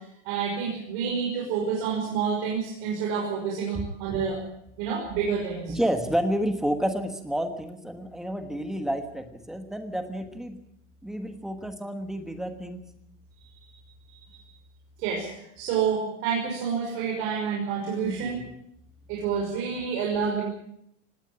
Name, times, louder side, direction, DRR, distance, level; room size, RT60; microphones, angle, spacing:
voice 1, 0.2-4.4 4.8-5.8 14.1-14.2 15.0-15.3 15.6-18.4 19.1-20.4, right 6 dB, 35° right, -2 dB, 5.8 m, -28 dB
voice 2, 5.7-10.6 11.0-12.8 18.0-18.5, equal, ahead, 7 dB, 1.3 m, -30 dB
19.0 x 17.5 x 8.8 m, 0.75 s
supercardioid pair, 175°, 36 cm